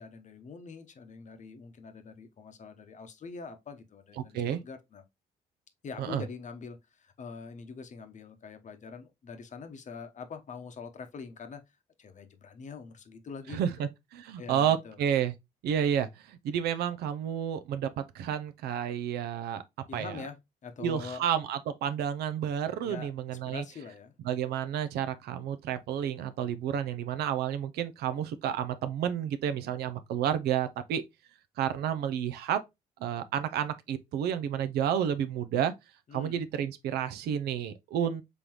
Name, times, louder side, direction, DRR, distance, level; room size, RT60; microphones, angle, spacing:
voice 1, 0.0-5.0 5.8-11.6 12.0-13.9 14.4-15.0 19.9-21.3 22.8-24.1 36.1-36.4, left 5 dB, 50° left, 0.8 m, -44 dB
voice 2, 4.2-4.6 6.0-6.2 13.5-15.3 15.6-19.6 19.9-20.2 20.8-23.6 24.2-31.0 31.6-32.6 33.0-35.7 36.1-38.2, right 9 dB, 80° right, 0.5 m, -30 dB
3.8 x 3.4 x 2.9 m
supercardioid pair, 65°, 16 cm